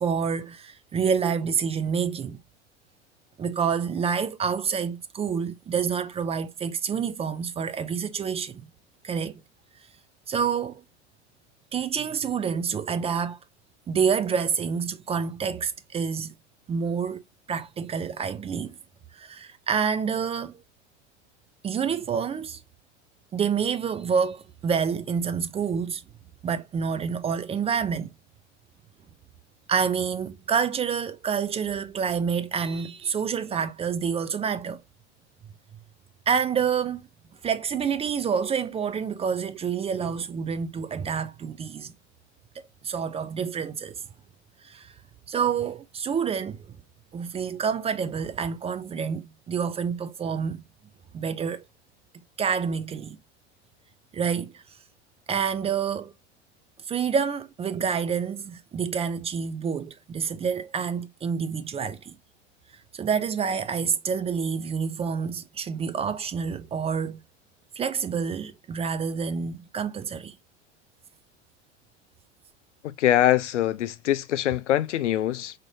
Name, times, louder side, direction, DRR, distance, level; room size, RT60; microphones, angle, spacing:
voice 1, 0.0-2.4 3.4-8.7 9.0-9.4 10.3-10.8 11.7-13.4 13.9-16.3 16.7-17.2 17.5-18.8 19.1-20.6 21.6-22.6 23.3-26.0 26.4-28.1 29.7-34.8 36.3-37.0 37.4-41.9 42.8-44.0 44.6-44.9 45.3-46.7 47.1-50.6 51.1-51.6 52.4-53.2 54.1-54.6 55.3-56.1 56.9-62.2 62.9-67.2 67.8-70.4, right 6 dB, 20° right, 0.4 m, -28 dB
voice 2, 72.8-75.5, left 12 dB, 90° left, 0.5 m, -23 dB
4.1 x 2.6 x 3.1 m
hypercardioid pair, 90°, 35 cm